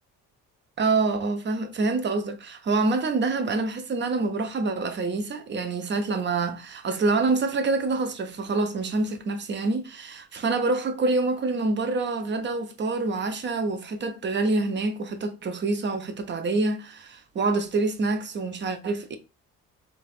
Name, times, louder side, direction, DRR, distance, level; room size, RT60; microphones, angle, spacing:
voice 1, 0.8-19.2, right 3 dB, 25° right, 0.6 m, -26 dB
3.4 x 3.3 x 2.3 m
figure-of-eight pair, 45°, 46 cm